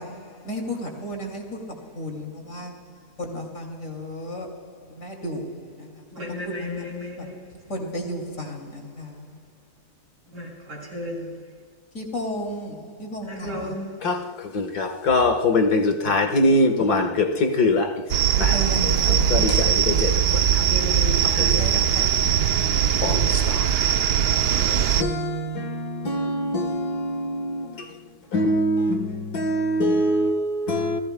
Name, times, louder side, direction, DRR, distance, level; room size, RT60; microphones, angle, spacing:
voice 1, 0.0-6.2 6.5-9.5 11.9-13.8 18.3-19.9 21.4-23.0, equal, 55° left, 3.1 m, -35 dB
voice 2, 6.1-7.7 10.3-11.8 13.2-14.1 20.6-21.8, left 1 dB, 65° right, 7.6 m, -34 dB
voice 3, 14.0-18.0 18.4-18.6 18.8-20.7 21.4-21.7 23.0-23.9 25.0-27.9 28.3-31.0, left 1 dB, 70° left, 1.9 m, -23 dB
sound 1, 18.1-25.0, right 9 dB, 85° right, 1.4 m, -21 dB
29.0 x 17.5 x 2.2 m
omnidirectional pair, 1.7 m